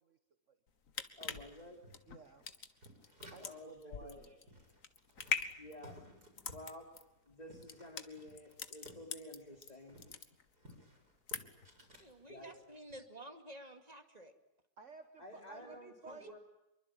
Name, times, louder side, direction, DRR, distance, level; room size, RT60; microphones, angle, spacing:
sound 1, 0.7-9.7 10.0-10.7 11.0-11.7 12.1-12.2, left 6 dB, 60° left, 1.8 m, -42 dB
sound 2, 1.0-3.8 4.1-4.2 4.5-9.1 9.4-12.1 12.6-13.0, equal, 85° right, 6.0 m, -58 dB
voice 1, 1.2-1.9 3.4-4.6 5.3-6.9 7.2-10.0 12.3-12.5 15.2-16.4, left 1 dB, 25° left, 3 dB, 3.3 m, -52 dB
voice 2, 2.1-2.5 3.3-4.4 14.8-16.4, right 4 dB, 50° right, 8 dB, 1.6 m, -55 dB
voice 3, 12.0-14.3 15.3-15.8 16.0-16.3, right 1 dB, 25° right, 6 dB, 2.3 m, -52 dB
25.5 x 23.5 x 9.0 m, 0.90 s
omnidirectional pair, 1.6 m